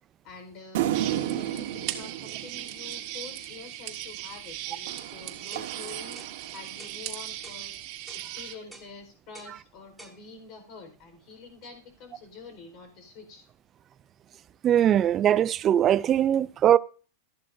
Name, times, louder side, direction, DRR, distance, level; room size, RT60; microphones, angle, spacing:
voice 1, 0.2-0.9 1.2-6.2 6.5-7.7 8.1-13.5, left 4 dB, 40° left, 4.3 m, -46 dB
sound 1, 0.7-3.4 4.9-6.9, right 12 dB, 65° right, 1.4 m, -33 dB
sound 2, 0.9-8.5, right 13 dB, 50° right, 1.6 m, -38 dB
sound 3, 5.5-5.7 6.2-6.4 6.8-7.0 7.4-7.7 8.1-8.3 8.7-8.9 9.3-9.6 10.0-10.2, right 2 dB, ahead, 1.5 m, -48 dB
voice 2, 14.6-16.8, right 10 dB, 25° right, 0.4 m, -21 dB
13.5 x 11.5 x 2.6 m
supercardioid pair, 145°, 0 cm